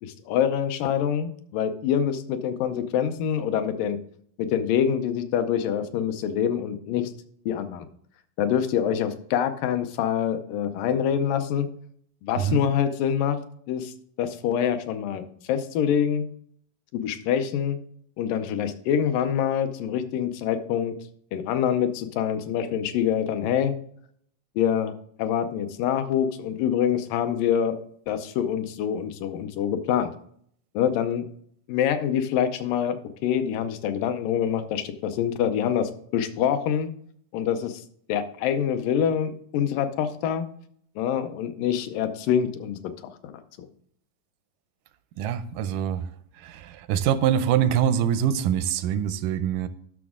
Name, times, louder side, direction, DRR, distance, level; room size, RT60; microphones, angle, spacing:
voice 1, 0.0-4.0 4.4-7.1 7.5-7.9 8.4-11.7 12.2-13.4 13.7-13.9 14.2-16.3 16.9-17.8 18.2-21.0 21.3-23.8 24.6-24.9 25.2-27.8 28.1-30.1 30.7-31.3 31.7-36.9 37.3-37.8 38.1-40.5 41.0-42.8 43.2-43.7, left 9 dB, 85° left, 8 dB, 2.4 m, -25 dB
voice 2, 45.2-46.0 46.4-49.7, right 9 dB, 85° right, 12 dB, 2.1 m, -24 dB
12.5 x 6.1 x 3.6 m, 0.65 s
omnidirectional pair, 3.8 m